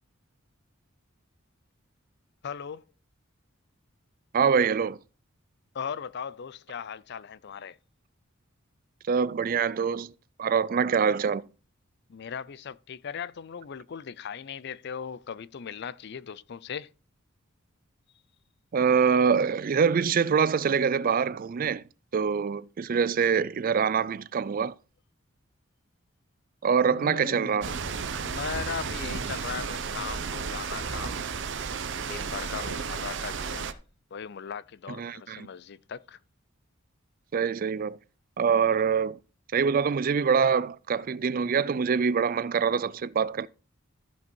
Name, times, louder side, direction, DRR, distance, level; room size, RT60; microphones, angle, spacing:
voice 1, 2.4-2.8 5.7-7.8 12.1-16.9 26.8-31.2 32.0-33.8 34.1-36.2, left 7 dB, 50° left, 0.4 m, -38 dB
voice 2, 4.3-5.0 9.1-10.1 10.4-11.5 18.7-21.8 22.1-24.7 26.6-27.7 35.0-35.5 37.3-38.0 38.4-39.2 39.5-43.5, right 6 dB, 40° right, 0.4 m, -25 dB
sound 1, 27.6-33.7, right 5 dB, 60° right, 0.8 m, -33 dB
13.5 x 5.6 x 4.5 m
head